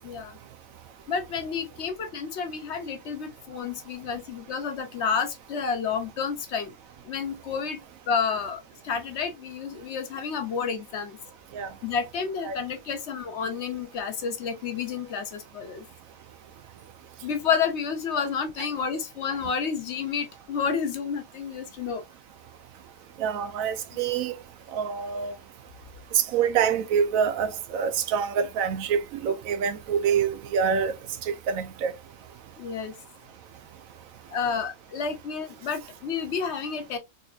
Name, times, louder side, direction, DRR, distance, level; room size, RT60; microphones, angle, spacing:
voice 1, 0.0-0.4 1.1-6.7 7.0-7.8 8.1-11.2 11.8-15.8 17.2-22.0 32.6-32.9 34.3-37.0, left 6 dB, 60° left, 0.8 m, -30 dB
voice 2, 23.2-24.3 24.7-25.3 26.1-30.9 31.2-31.9, right 7 dB, 85° right, 1.0 m, -26 dB
4.1 x 2.8 x 2.3 m
omnidirectional pair, 1.4 m